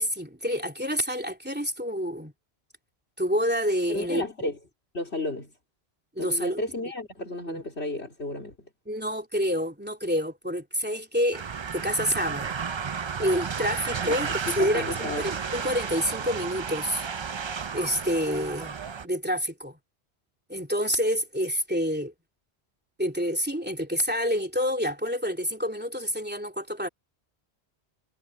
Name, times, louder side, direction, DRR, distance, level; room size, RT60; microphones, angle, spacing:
voice 1, 0.0-2.3 3.2-4.2 6.1-6.6 7.5-7.6 8.9-11.4 11.7-12.6 13.2-17.1 17.7-18.8 19.0-19.8 20.5-22.1 23.0-26.9, equal, 10° right, 3.1 m, -28 dB
voice 2, 3.9-4.6 4.9-5.5 6.2-8.5 14.0-14.2 14.5-15.3, left 2 dB, 80° left, 4.0 m, -32 dB
sound 1, 11.3-19.1, right 6 dB, 40° right, 0.4 m, -33 dB
omnidirectional pair, 1.1 m